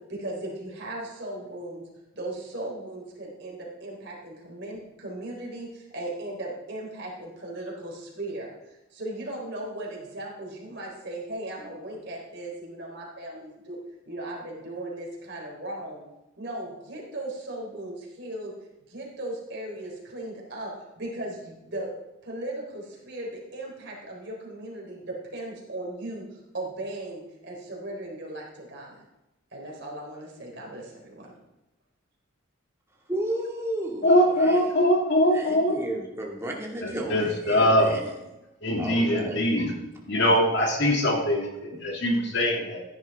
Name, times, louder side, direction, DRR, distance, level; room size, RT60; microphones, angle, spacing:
voice 1, 0.1-1.8 2.1-13.8 14.1-16.0 16.4-18.5 18.9-21.9 22.2-29.0 29.5-31.3, right 1 dB, 55° right, -2 dB, 3.9 m, -37 dB
voice 2, 33.1-34.7 35.3-38.1 38.8-39.4 40.2-40.7, right 1 dB, 15° right, -2 dB, 2.1 m, -33 dB
voice 3, 34.0-35.7 36.8-37.9 38.6-39.7 40.1-42.8, equal, 55° left, 0 dB, 2.5 m, -22 dB
15.5 x 10.5 x 3.6 m, 0.96 s
head